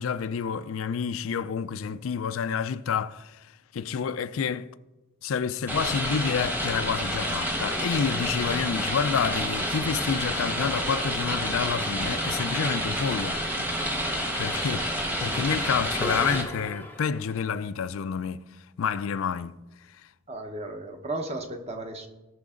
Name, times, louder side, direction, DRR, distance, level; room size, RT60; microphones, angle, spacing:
voice 1, 0.0-3.5 3.7-4.7 5.2-13.4 14.4-14.9 15.2-18.4 18.8-19.6, left 6 dB, 75° left, 0.4 m, -29 dB
sound 1, 5.7-16.4, equal, 10° right, 1.2 m, -29 dB
sound 2, 16.0-17.5, equal, 10° left, 0.8 m, -37 dB
voice 2, 20.3-22.1, right 2 dB, 30° right, 1.0 m, -34 dB
17.5 x 5.9 x 3.8 m
head